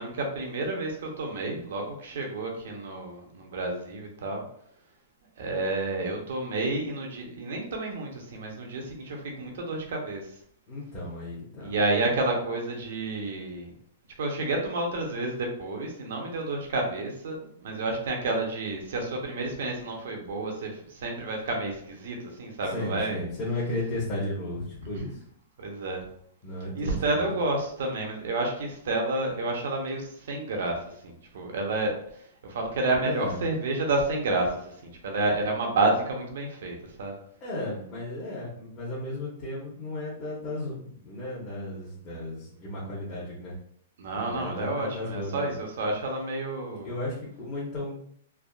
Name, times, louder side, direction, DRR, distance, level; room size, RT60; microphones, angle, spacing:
voice 1, 0.0-4.4 5.4-10.3 11.6-13.7 14.2-17.4 17.6-23.2 24.9-25.1 25.6-26.0 26.7-37.2 44.0-46.9, right 2 dB, 70° right, 1 dB, 0.7 m, -30 dB
voice 2, 10.7-11.7 22.7-25.2 26.4-27.3 33.0-33.4 37.4-43.5 44.2-45.5 46.8-48.0, left 1 dB, 30° left, -7 dB, 0.9 m, -34 dB
3.4 x 2.0 x 2.4 m, 0.66 s
hypercardioid pair, 135°, 0 cm